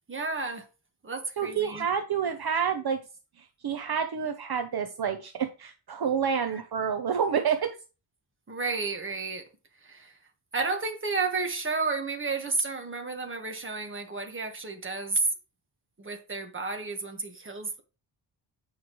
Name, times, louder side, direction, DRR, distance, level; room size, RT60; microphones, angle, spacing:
voice 1, 0.1-0.7 1.0-1.9 6.5-6.6 8.5-9.4 9.8-10.2 10.5-15.3 16.0-17.8, right 3 dB, 25° right, 1.5 m, -31 dB
voice 2, 1.4-3.0 3.4-7.8, right 7 dB, 55° right, 0.9 m, -28 dB
8.9 x 5.6 x 3.1 m
wide cardioid pair, 120°, 46 cm